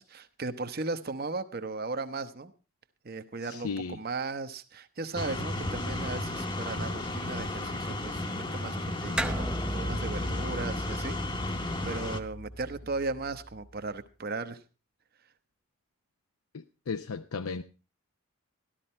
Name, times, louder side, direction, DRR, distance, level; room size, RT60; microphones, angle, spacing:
voice 1, 0.0-2.5 3.0-11.2 11.5-14.6, right 3 dB, 45° right, 0.9 m, -37 dB
voice 2, 3.5-4.0 16.5-17.6, left 5 dB, 80° left, 0.6 m, -35 dB
sound 1, 5.2-12.2, left 1 dB, 20° left, 0.9 m, -33 dB
sound 2, 9.2-13.9, equal, 5° right, 0.5 m, -36 dB
13.0 x 13.0 x 4.3 m
head